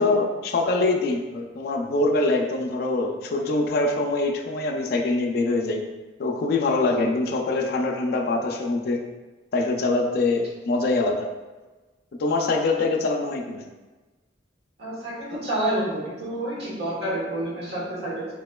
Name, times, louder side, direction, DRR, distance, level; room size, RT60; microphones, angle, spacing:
voice 1, 0.0-5.8 6.2-9.0 9.5-11.3 12.2-13.6, left 2 dB, 60° left, 2 dB, 0.4 m, -24 dB
voice 2, 14.8-18.3, right 1 dB, 70° right, -6 dB, 1.2 m, -29 dB
3.6 x 2.9 x 2.2 m, 1.2 s
head